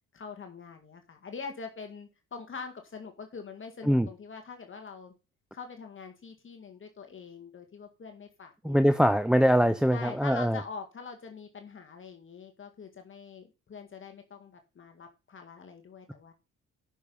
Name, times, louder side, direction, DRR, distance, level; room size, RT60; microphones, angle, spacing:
voice 1, 0.1-5.1 5.5-8.8 9.9-16.3, left 5 dB, 40° left, 1.9 m, -44 dB
voice 2, 8.6-10.6, equal, 5° right, 0.6 m, -23 dB
10.0 x 6.3 x 5.4 m
cardioid pair, 90°, 30 cm